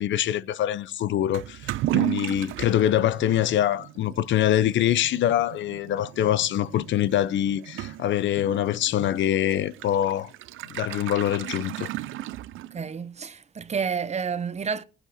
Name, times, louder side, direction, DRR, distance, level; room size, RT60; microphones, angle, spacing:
voice 1, 0.0-10.3 10.7-11.9, left 11 dB, 70° left, 0.7 m, -24 dB
Toilet flush / Liquid, 1.3-13.0, right 15 dB, 85° right, 0.5 m, -35 dB
voice 2, 12.7-14.8, right 6 dB, 35° right, 0.8 m, -30 dB
19.5 x 8.1 x 4.2 m
cardioid pair, 90°, 20 cm